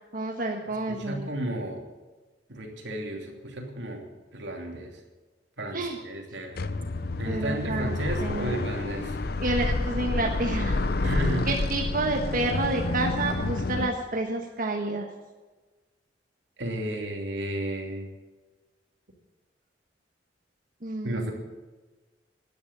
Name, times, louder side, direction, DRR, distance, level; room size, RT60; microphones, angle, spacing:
voice 1, 0.1-1.3 5.7-6.0 7.2-8.6 9.4-11.0 11.5-15.1 20.8-21.3, right 2 dB, 50° right, 1 dB, 1.3 m, -29 dB
voice 2, 0.9-1.8 2.5-5.0 5.6-6.6 7.2-9.2 11.0-11.5 16.6-18.1 21.0-21.3, right 1 dB, 80° right, 2 dB, 2.8 m, -33 dB
sound 1, 6.6-13.9, left 2 dB, 60° left, 0.8 m, -29 dB
12.5 x 10.0 x 8.3 m, 1.3 s
head